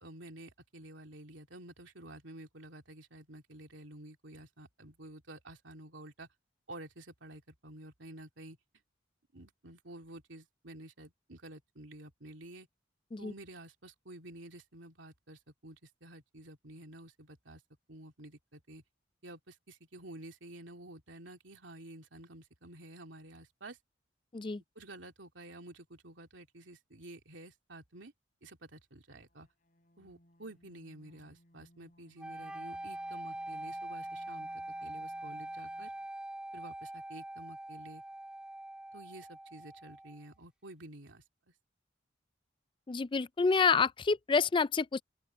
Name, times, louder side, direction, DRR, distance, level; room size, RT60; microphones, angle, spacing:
voice 1, 0.0-6.3 6.7-8.6 9.3-12.7 13.2-17.6 17.9-18.8 19.2-23.8 24.7-28.1 28.4-29.5 30.0-34.5 34.8-35.9 36.5-38.0 38.9-41.2, right 1 dB, 85° right, 2.8 m, -51 dB
sound 1, 29.2-36.1, equal, 45° left, 7.8 m, -65 dB
sound 2, 32.2-40.3, right 1 dB, 5° right, 1.3 m, -43 dB
voice 2, 42.9-45.0, left 5 dB, 25° left, 0.4 m, -28 dB
open air
head